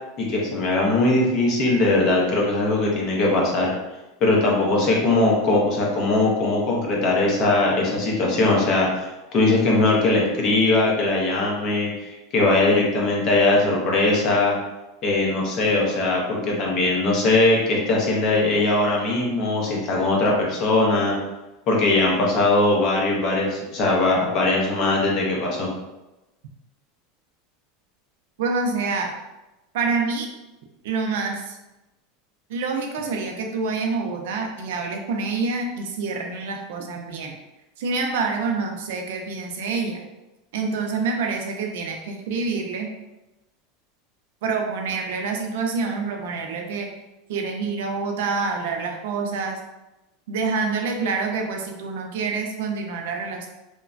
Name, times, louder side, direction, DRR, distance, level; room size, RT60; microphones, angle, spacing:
voice 1, 0.2-3.7 4.2-14.6 15.0-21.2 21.7-25.7, left 2 dB, 30° left, -2 dB, 0.6 m, -20 dB
voice 2, 28.4-29.1 29.7-30.3 30.8-31.6 32.5-37.4 37.8-40.0 40.5-42.9 44.4-46.9 47.3-49.6 50.3-53.5, right 4 dB, 70° right, 2 dB, 0.4 m, -27 dB
3.0 x 2.1 x 2.4 m, 1.0 s
supercardioid pair, 180°, 0 cm